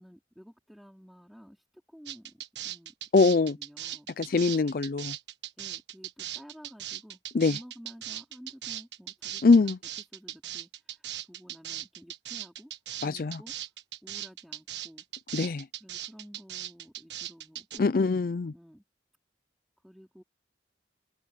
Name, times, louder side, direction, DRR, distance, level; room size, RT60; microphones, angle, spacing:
voice 1, 0.0-2.9 3.3-4.1 5.6-9.8 10.1-12.7 13.0-13.5 14.0-15.1 15.4-18.0 18.5-18.8 19.8-20.2, equal, ahead, 3.9 m, -52 dB
sound 1, 2.1-17.8, right 12 dB, 75° right, 1.3 m, -39 dB
voice 2, 3.1-3.6 4.2-5.2 7.3-7.6 9.4-9.8 13.0-13.4 15.3-15.7 17.8-18.5, left 4 dB, 50° left, 0.4 m, -23 dB
head